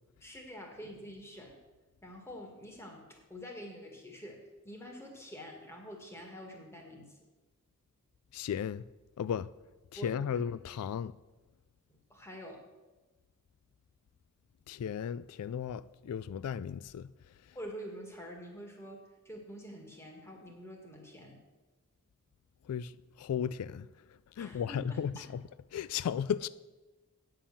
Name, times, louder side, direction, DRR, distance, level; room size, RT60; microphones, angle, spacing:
voice 1, 0.2-1.6 2.0-7.2 9.9-10.5 12.1-12.6 17.5-19.0 19.2-21.4 24.4-25.3, equal, 10° left, 1.9 m, -47 dB
voice 2, 8.3-8.8 9.2-9.5 9.9-11.1 14.7-17.1 22.7-22.9 23.2-23.9 24.4-25.4 25.7-26.5, left 8 dB, 90° left, 0.3 m, -35 dB
9.4 x 7.1 x 7.0 m
head